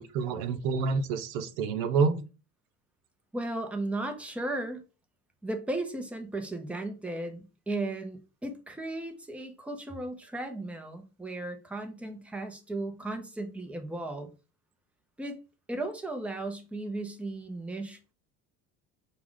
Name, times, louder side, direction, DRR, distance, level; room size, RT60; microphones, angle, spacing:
voice 1, 0.0-2.2, right 5 dB, 80° right, 0.7 m, -28 dB
voice 2, 3.3-4.8 5.4-14.3 15.2-15.4 15.7-18.1, right 2 dB, 5° right, 0.8 m, -35 dB
4.8 x 2.4 x 3.7 m
supercardioid pair, 105°, 31 cm